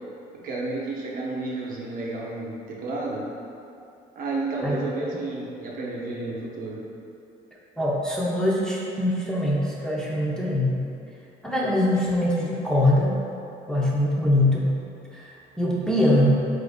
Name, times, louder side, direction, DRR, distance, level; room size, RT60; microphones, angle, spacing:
voice 1, 0.4-3.3 4.2-6.8, right 2 dB, 55° right, -3 dB, 0.7 m, -31 dB
voice 2, 4.6-5.1 7.8-10.8 11.4-13.2 13.7-14.7 15.1-15.3 15.6-16.3, left 1 dB, 5° left, -6 dB, 0.5 m, -23 dB
3.8 x 2.5 x 3.4 m, 2.7 s
cardioid pair, 110°, 17 cm